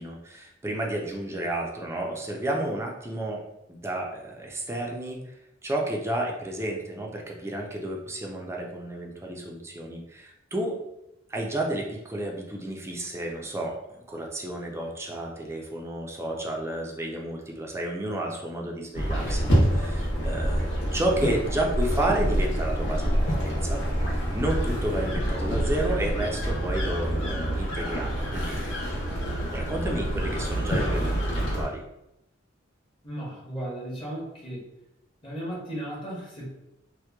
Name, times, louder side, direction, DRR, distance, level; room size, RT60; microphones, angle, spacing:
voice 1, 0.0-3.4 3.7-5.2 5.6-10.7 11.3-13.7 14.1-23.8 24.1-28.6 29.3-31.8, right 1 dB, 15° right, 0 dB, 0.4 m, -31 dB
sound 1, 18.9-31.7, equal, 75° left, 0.9 m, -27 dB
voice 2, 33.0-34.6 35.2-36.5, right 1 dB, 25° left, -5 dB, 0.8 m, -35 dB
2.8 x 2.1 x 2.2 m, 0.88 s
head